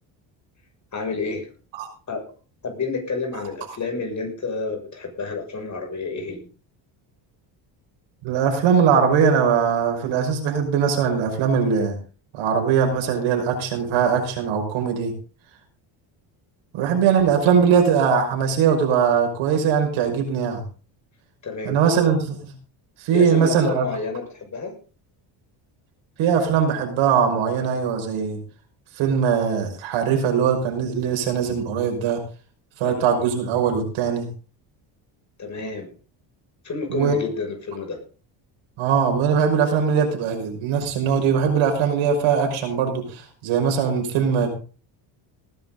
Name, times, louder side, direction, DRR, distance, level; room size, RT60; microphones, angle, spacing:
voice 1, 0.9-1.5 2.1-2.2 2.6-6.5 21.4-21.8 23.1-24.7 32.8-33.0 35.4-35.9 36.6-38.0, left 4 dB, 35° left, 3 dB, 6.5 m, -30 dB
voice 2, 8.2-12.0 12.3-15.1 16.7-20.6 21.7-22.5 23.0-23.9 26.2-28.4 29.0-32.2 32.8-34.3 36.9-37.2 38.8-44.7, right 7 dB, 80° right, 3 dB, 5.6 m, -21 dB
19.0 x 11.0 x 4.0 m, 0.37 s
cardioid pair, 105°, 46 cm